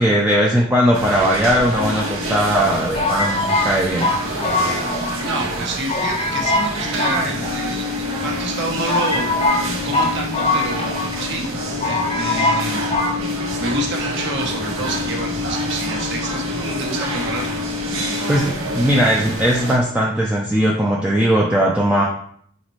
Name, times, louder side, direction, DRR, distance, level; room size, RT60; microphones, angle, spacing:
voice 1, 0.0-4.2 18.3-22.0, equal, 5° right, -4 dB, 0.4 m, -18 dB
sound 1, 0.9-19.8, right 1 dB, 75° right, 1.1 m, -28 dB
sound 2, 1.5-2.2 2.9-5.2 5.5-5.6 5.9-6.7 7.0-8.0 8.5-8.6 8.9-11.2 11.4-11.5 11.8-12.6 12.9-13.1, left 2 dB, 25° left, 0.7 m, -22 dB
sound 3, 4.9-18.8, left 8 dB, 65° left, 0.7 m, -31 dB
voice 2, 5.2-9.3 9.8-11.6 11.8-12.8 13.6-17.5, right 2 dB, 55° right, 0 dB, 1.0 m, -28 dB
4.2 x 4.0 x 3.1 m, 0.63 s
head